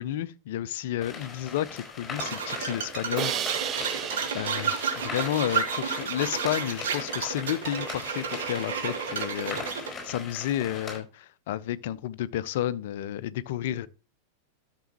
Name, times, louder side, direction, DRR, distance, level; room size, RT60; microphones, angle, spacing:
voice 1, 0.0-3.5 4.3-13.9, left 12 dB, 55° left, 0.5 m, -31 dB
sound 1, 1.0-11.0, left 4 dB, 10° left, 4.7 m, -40 dB
sound 2, 2.2-9.9, right 6 dB, 60° right, 1.5 m, -32 dB
Crash cymbal, 3.2-6.2, right 10 dB, 30° right, 0.6 m, -34 dB
12.5 x 6.7 x 2.9 m
figure-of-eight pair, 90°, 0 cm